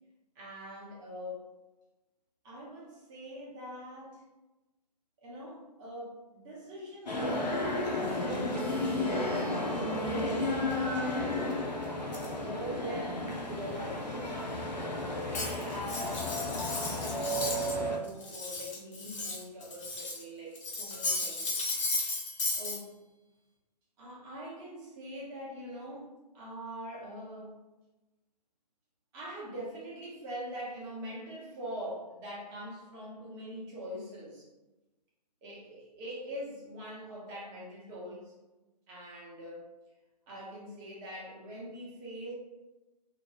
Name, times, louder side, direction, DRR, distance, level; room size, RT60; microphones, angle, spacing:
voice 1, 0.3-1.5 2.4-4.2 5.2-11.4 12.3-14.1 15.0-21.5 22.5-22.9 24.0-27.6 29.1-34.5 35.4-38.3 38.9-39.6 40.3-42.3, equal, 15° right, -5 dB, 0.7 m, -43 dB
sound 1, 7.1-18.0, left 1 dB, 85° left, 0.7 m, -33 dB
sound 2, 8.5-16.5, right 6 dB, 60° right, 0.8 m, -46 dB
Cutlery silverware, 15.3-17.8 18.1-20.2 20.5-22.8, left 3 dB, 50° left, 0.7 m, -35 dB
2.9 x 2.0 x 2.9 m, 1.1 s
figure-of-eight pair, 130°, 21 cm